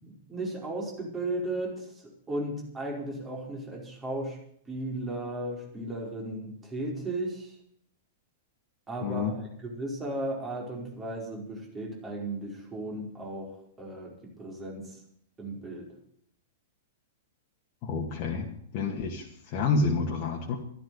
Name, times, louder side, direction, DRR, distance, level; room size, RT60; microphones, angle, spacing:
voice 1, 0.0-1.8 2.3-4.4 4.7-7.5 8.9-13.5 13.8-14.1 14.4-14.9 15.4-15.9, right 1 dB, 15° right, -1 dB, 5.0 m, -35 dB
voice 2, 9.0-9.3 17.8-18.5 18.7-20.6, left 4 dB, 40° left, 0 dB, 2.3 m, -29 dB
12.5 x 12.0 x 8.7 m, 0.66 s
figure-of-eight pair, 105°, 0 cm